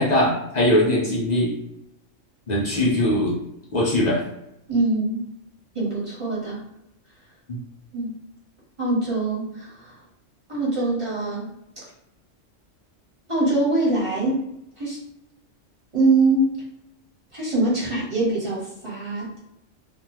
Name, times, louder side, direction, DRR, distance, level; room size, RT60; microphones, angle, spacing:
voice 1, 0.0-1.5 2.5-3.4 3.7-4.2 7.5-7.6, left 1 dB, 55° left, -4 dB, 0.5 m, -21 dB
voice 2, 4.7-5.2 5.7-6.6 7.9-8.1 8.8-9.9 10.5-11.5 13.3-14.5 14.8-15.0 15.9-16.6 17.3-19.4, right 2 dB, 25° right, -8 dB, 1.1 m, -23 dB
2.4 x 2.2 x 3.0 m, 0.82 s
omnidirectional pair, 1.3 m